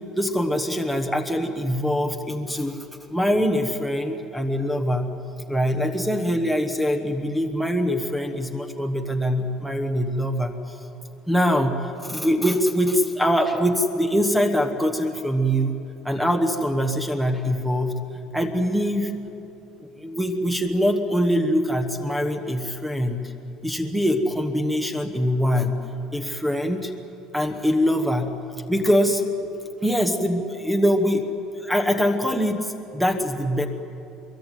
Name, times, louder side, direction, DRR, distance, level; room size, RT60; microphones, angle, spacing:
voice 1, 0.1-2.8 3.1-5.1 5.5-10.7 11.3-15.7 16.0-17.9 18.3-19.1 20.0-23.3 23.6-25.7 26.1-26.9 27.3-28.3 28.7-29.2 29.8-31.2 31.6-33.7, equal, 5° right, 6 dB, 1.2 m, -23 dB
24.5 x 22.5 x 9.2 m, 2.9 s
cardioid pair, 175°, 0 cm